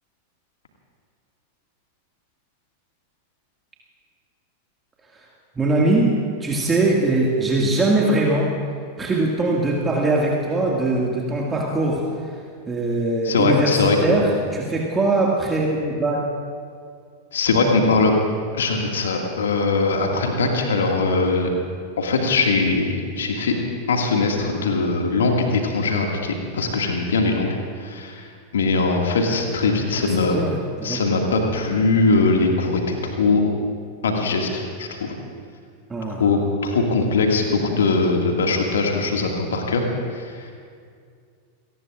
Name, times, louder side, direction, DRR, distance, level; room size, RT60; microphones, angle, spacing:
voice 1, 5.6-8.5 9.0-12.0 12.7-13.7 14.0-16.2 30.0-31.0 35.9-36.3, right 2 dB, 15° right, -2 dB, 2.1 m, -21 dB
voice 2, 13.2-14.2 17.3-18.1 18.5-21.5 22.0-23.5 23.9-27.5 27.8-30.4 30.8-33.4 34.0-35.1 36.2-39.8 40.1-40.5, left 3 dB, 65° left, 1 dB, 2.1 m, -21 dB
29.0 x 18.5 x 2.5 m, 2.2 s
figure-of-eight pair, 90°, 0 cm